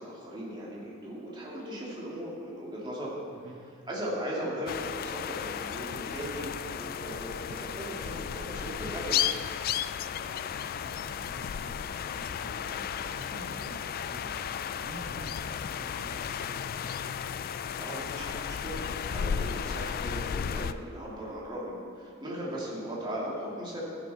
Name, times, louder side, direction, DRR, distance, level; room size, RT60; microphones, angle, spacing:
voice 1, 0.0-3.1 3.9-9.3 17.8-23.8, equal, 20° right, -6 dB, 2.6 m, -38 dB
voice 2, 3.3-3.7 10.1-16.9, right 1 dB, 65° right, -2 dB, 1.4 m, -47 dB
sound 1, 4.7-20.7, left 8 dB, 45° left, 0.3 m, -34 dB
13.5 x 9.3 x 4.3 m, 2.4 s
head